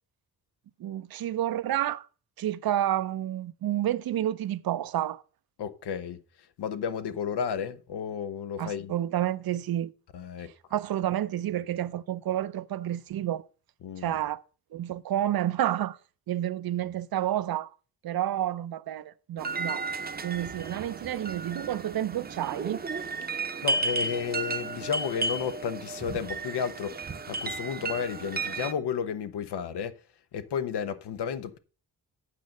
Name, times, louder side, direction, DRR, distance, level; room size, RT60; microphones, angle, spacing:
voice 1, 0.8-2.1 2.4-5.2 8.6-9.9 10.7-13.5 14.0-14.4 14.7-16.0 16.3-17.7 18.0-19.9 20.2-22.8 27.8-27.9, right 12 dB, 65° right, 0.6 m, -30 dB
voice 2, 5.6-6.2 6.6-8.9 10.1-10.5 13.8-14.2 23.6-29.9 30.3-31.6, left 7 dB, 85° left, 0.9 m, -32 dB
sound 1, 19.4-28.7, right 3 dB, 25° right, 0.7 m, -33 dB
8.4 x 5.3 x 6.5 m
wide cardioid pair, 145°, 39 cm